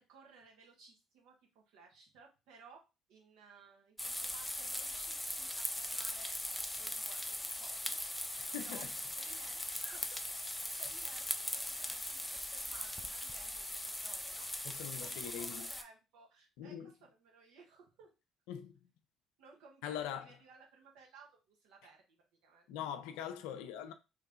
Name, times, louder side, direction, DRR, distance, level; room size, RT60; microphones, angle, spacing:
voice 1, 0.0-2.8 3.1-6.3 6.6-8.8 9.2-10.2 10.8-14.5 15.0-18.1 19.4-22.7, right 4 dB, 70° right, 1.2 m, -59 dB
sound 1, 4.0-15.8, left 1 dB, 10° left, 0.5 m, -40 dB
voice 2, 8.4-8.9 14.6-15.7 16.6-16.9 18.5-18.7 19.8-20.3 22.7-23.9, left 9 dB, 75° left, 0.5 m, -42 dB
3.1 x 2.7 x 3.6 m
hypercardioid pair, 55°, 0 cm